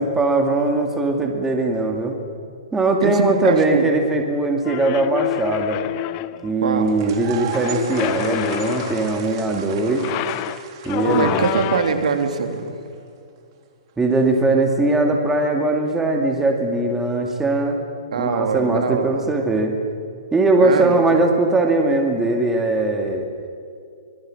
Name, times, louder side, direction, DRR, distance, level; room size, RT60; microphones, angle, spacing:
voice 1, 0.0-2.2 2.7-5.8 6.4-10.0 10.8-11.5 14.0-17.8 18.2-19.8 20.3-23.3, right 2 dB, 10° right, 3 dB, 2.1 m, -20 dB
voice 2, 3.0-3.9 6.6-6.9 11.0-12.8 18.1-19.3 20.6-21.2, right 5 dB, 75° right, 6 dB, 3.2 m, -23 dB
sound 1, 4.6-6.5 7.5-9.3 9.9-12.2, left 16 dB, 30° left, 0.6 m, -27 dB
sound 2, 6.9-12.9, right 8 dB, 40° right, 3.5 m, -36 dB
25.5 x 21.5 x 7.6 m, 2.4 s
hypercardioid pair, 160°, 4 cm